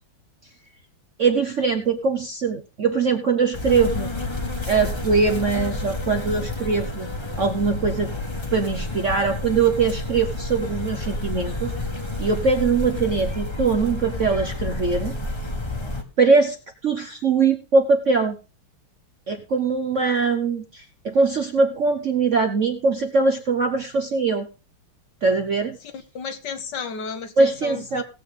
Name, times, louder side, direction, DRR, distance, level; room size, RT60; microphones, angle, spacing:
voice 1, 1.2-4.1 4.6-7.1 7.4-8.1 8.5-11.7 12.2-15.2 16.2-16.6 16.8-18.4 19.3-24.5 25.2-25.8 27.4-28.0, right 4 dB, 50° right, 0.9 m, -22 dB
sound 1, 3.5-16.0, left 2 dB, 15° left, 1.2 m, -29 dB
voice 2, 25.8-28.0, left 5 dB, 60° left, 1.4 m, -33 dB
18.0 x 7.5 x 3.7 m
omnidirectional pair, 2.4 m